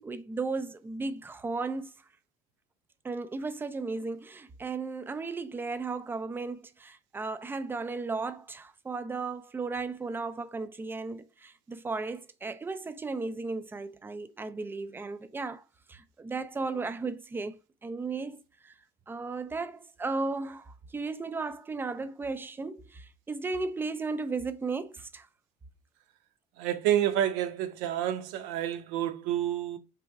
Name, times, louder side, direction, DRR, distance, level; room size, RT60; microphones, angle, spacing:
voice 1, 0.0-1.9 3.0-15.6 15.9-17.6 17.8-18.7 19.1-25.3, right 3 dB, 10° right, 0.4 m, -35 dB
voice 2, 26.6-29.8, right 11 dB, 80° right, 0.8 m, -29 dB
3.4 x 3.0 x 4.6 m
cardioid pair, 135°, 18 cm